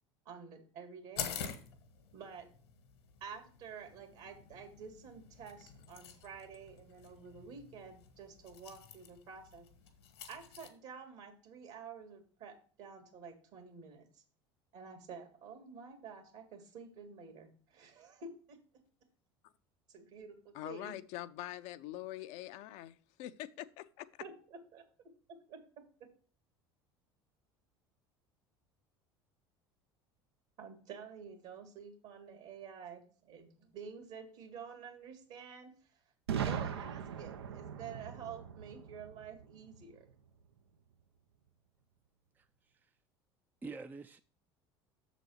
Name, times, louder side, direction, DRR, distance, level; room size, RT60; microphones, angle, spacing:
voice 1, 0.3-1.3 2.1-2.5 3.2-9.7 10.3-14.1 14.7-18.6 19.9-20.9 24.2-24.8 25.5-25.6 30.6-35.9 36.3-40.1, right 6 dB, 60° right, 2.1 m, -50 dB
sound 1, 1.2-10.7, left 7 dB, 80° left, 1.2 m, -48 dB
voice 2, 20.5-24.2, left 14 dB, 60° left, 0.5 m, -44 dB
Boom, 36.3-40.1, right 8 dB, 85° right, 0.6 m, -40 dB
voice 3, 42.4-42.9 43.6-44.2, right 4 dB, 15° right, 0.3 m, -47 dB
6.8 x 4.0 x 6.2 m
hypercardioid pair, 75°, 13 cm